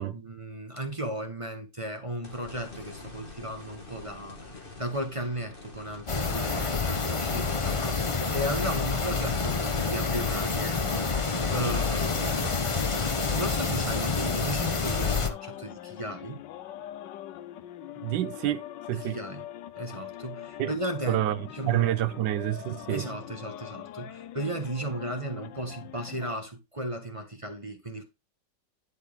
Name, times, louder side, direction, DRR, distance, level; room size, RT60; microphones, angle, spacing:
voice 1, 0.0-13.0 13.3-16.4 18.9-19.4 19.7-21.2 21.5-21.9 22.9-28.0, right 1 dB, 20° right, 1.1 m, -35 dB
sound 1, 2.2-14.6 15.0-15.1 18.5-18.6, left 3 dB, 30° left, 2.0 m, -47 dB
sound 2, 6.1-15.3, left 4 dB, 55° left, 0.3 m, -28 dB
sound 3, 11.4-26.4, left 11 dB, 80° left, 1.3 m, -43 dB
voice 2, 18.0-18.6 18.9-19.2 20.6-20.7 21.1-21.4 21.7-23.1, right 14 dB, 80° right, 1.4 m, -28 dB
11.0 x 4.4 x 3.5 m
omnidirectional pair, 2.0 m